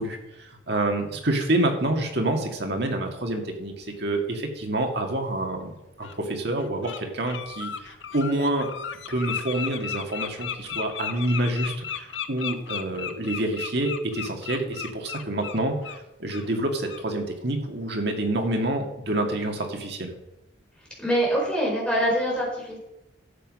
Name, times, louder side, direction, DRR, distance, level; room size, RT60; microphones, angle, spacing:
voice 1, 0.0-5.7 6.0-8.7 9.1-20.1, right 1 dB, 60° right, 3 dB, 2.1 m, -27 dB
Bird, 5.2-5.3 6.0-6.2 6.6-7.0 7.3-16.0 16.3-16.5 16.9-17.1, left 8 dB, 80° left, 0.9 m, -35 dB
voice 2, 21.0-22.8, equal, 5° left, -4 dB, 4.8 m, -24 dB
12.5 x 8.2 x 5.4 m, 0.90 s
head